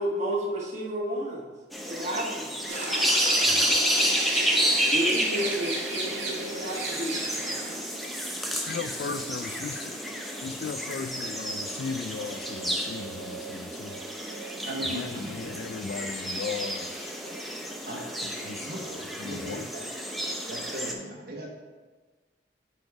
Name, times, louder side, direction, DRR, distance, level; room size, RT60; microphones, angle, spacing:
voice 1, 0.0-1.5 1.9-2.5 4.8-7.2, equal, 40° right, -3 dB, 1.4 m, -31 dB
sound 1, 1.7-20.9, equal, ahead, 0.6 m, -30 dB
sound 2, 2.7-7.8, right 2 dB, 85° right, 1.5 m, -34 dB
voice 2, 8.5-10.0 10.4-14.0 14.9-17.2 18.3-19.7, left 5 dB, 65° left, 11 dB, 0.3 m, -37 dB
voice 3, 14.6-15.5 17.9-18.0 18.4-18.9 19.2-19.9 20.5-21.5, right 1 dB, 55° right, 0 dB, 1.2 m, -38 dB
6.8 x 4.2 x 4.7 m, 1.4 s
head